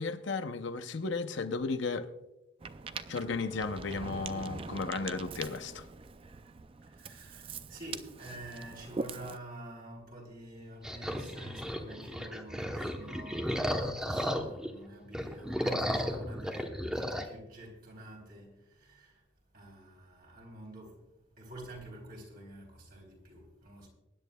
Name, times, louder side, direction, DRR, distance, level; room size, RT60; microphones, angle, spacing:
voice 1, 0.0-2.1 3.1-5.8, left 4 dB, 60° left, 0.7 m, -34 dB
Ocean, 2.6-9.4, right 4 dB, 25° right, 0.4 m, -43 dB
voice 2, 6.8-19.2 19.5-21.1 21.4-23.9, right 1 dB, 45° right, 3.7 m, -48 dB
sound 1, 10.8-14.7 15.1-17.3, equal, 5° right, 0.9 m, -34 dB
23.0 x 10.5 x 2.3 m
head